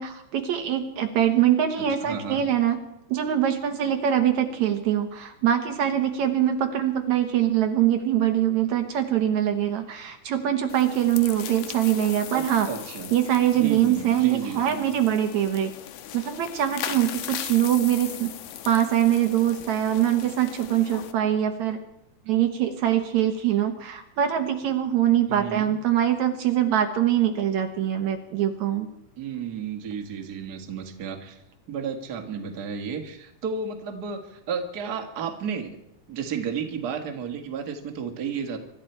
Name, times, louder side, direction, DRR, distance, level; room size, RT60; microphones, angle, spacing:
voice 1, 0.0-2.8 3.1-12.7 13.1-15.7 16.1-18.3 18.7-21.8 22.3-28.9, right 11 dB, 70° right, 6 dB, 2.4 m, -23 dB
voice 2, 2.0-2.4 12.3-13.2 13.5-14.8 25.3-25.7 29.2-31.4 31.7-35.8 36.1-38.6, right 6 dB, 40° right, 4 dB, 1.7 m, -32 dB
sound 1, 10.7-21.1, left 11 dB, 75° left, 2.3 m, -38 dB
24.5 x 12.5 x 4.5 m, 0.82 s
omnidirectional pair, 3.6 m